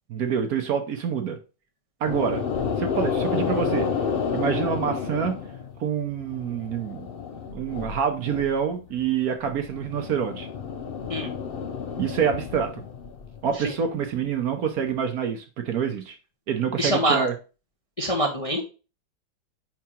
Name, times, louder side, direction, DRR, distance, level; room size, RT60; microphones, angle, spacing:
voice 1, 0.1-1.4 2.0-2.4 2.8-3.9 4.3-5.4 5.8-7.1 7.5-10.5 12.0-12.8 13.4-16.2 16.5-17.3, right 7 dB, 65° right, 6 dB, 1.2 m, -26 dB
sound 1, 2.1-5.8 6.1-8.5 8.9-13.7, left 6 dB, 85° left, 0.5 m, -30 dB
voice 2, 16.8-17.3 18.0-18.6, right 1 dB, 30° left, 0 dB, 0.7 m, -24 dB
4.9 x 4.7 x 4.3 m, 0.32 s
omnidirectional pair, 1.9 m